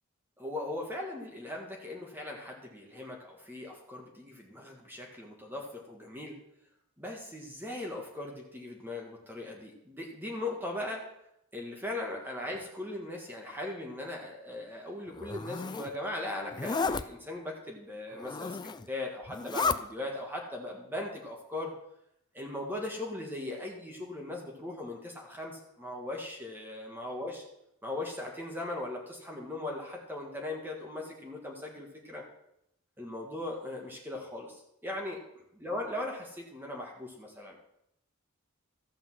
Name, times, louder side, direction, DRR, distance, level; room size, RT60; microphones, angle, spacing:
voice 1, 0.4-6.3 7.0-11.0 11.5-21.7 22.3-27.4 27.8-32.2 33.0-35.2 35.5-37.6, left 1 dB, 10° right, 0 dB, 1.8 m, -39 dB
Zipper (clothing), 15.1-15.9 16.5-17.0 18.1-18.9 19.3-19.8, left 4 dB, 20° left, 0.3 m, -32 dB
13.5 x 5.4 x 7.5 m, 0.78 s
head